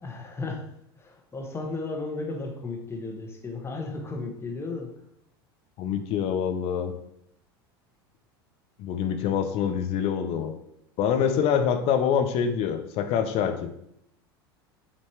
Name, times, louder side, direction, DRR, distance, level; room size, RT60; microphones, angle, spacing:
voice 1, 0.0-0.7 1.0-4.9 11.1-11.4, left 3 dB, 20° left, 2 dB, 1.4 m, -34 dB
voice 2, 5.8-6.9 8.8-10.5 11.0-13.7, left 8 dB, 50° left, 7 dB, 0.7 m, -25 dB
7.4 x 3.1 x 4.5 m, 0.76 s
hypercardioid pair, 85°, 13 cm